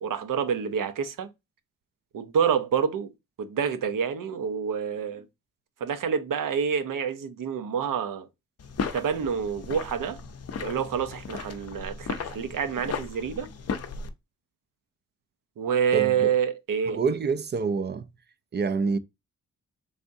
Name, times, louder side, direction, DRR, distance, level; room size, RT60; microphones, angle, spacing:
voice 1, 0.0-1.3 2.1-3.1 3.4-5.2 5.8-8.3 8.9-10.2 10.6-13.5 15.6-17.0, right 7 dB, 70° right, 0.7 m, -27 dB
sound 1, 8.6-14.1, left 5 dB, 50° left, 0.5 m, -36 dB
voice 2, 15.9-16.3 16.9-18.1 18.5-19.0, right 4 dB, 35° right, 0.4 m, -27 dB
3.5 x 3.4 x 2.6 m
cardioid pair, 85°, 33 cm